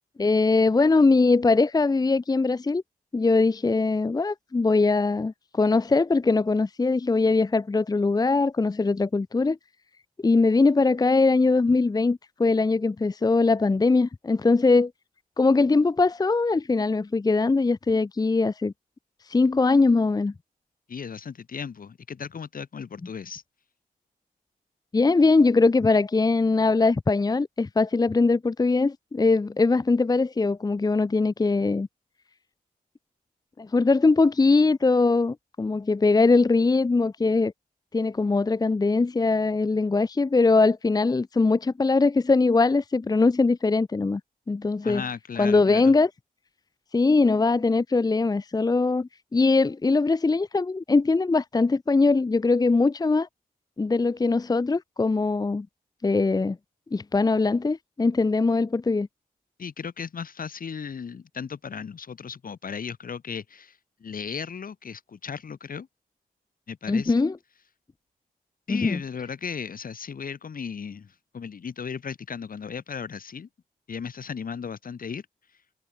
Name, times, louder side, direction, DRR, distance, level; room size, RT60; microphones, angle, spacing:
voice 1, 0.2-2.8 3.1-9.6 10.2-14.9 15.4-18.7 19.3-20.3 24.9-31.9 33.6-37.5 37.9-44.2 44.5-45.0 45.4-46.1 46.9-53.3 53.8-55.7 56.0-56.6 56.9-59.1 66.9-67.4 68.7-69.0, left 3 dB, 25° left, 0.6 m, -21 dB
voice 2, 20.9-23.4 44.8-45.9 59.6-65.9 66.7-67.2 68.7-73.5 73.9-75.3, left 6 dB, 65° left, 1.9 m, -36 dB
cardioid pair, 65°, 16 cm